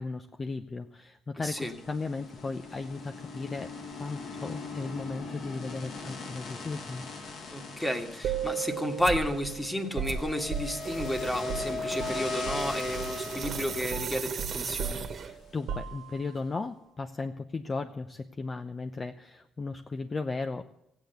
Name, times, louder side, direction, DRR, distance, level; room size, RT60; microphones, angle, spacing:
voice 1, 0.0-7.1 15.2-20.7, left 3 dB, 35° left, 7 dB, 0.7 m, -36 dB
voice 2, 1.4-1.7 7.5-15.1, left 1 dB, 10° left, 6 dB, 1.8 m, -32 dB
sound 1, 1.5-15.7, left 4 dB, 65° left, 2.4 m, -40 dB
sound 2, 8.2-12.7 12.9-13.2 13.4-16.4, right 8 dB, 75° right, 1.2 m, -37 dB
sound 3, 9.0-9.3 10.0-15.5, right 5 dB, 55° right, 1.4 m, -37 dB
15.5 x 8.9 x 8.0 m, 0.79 s
cardioid pair, 90°, 0 cm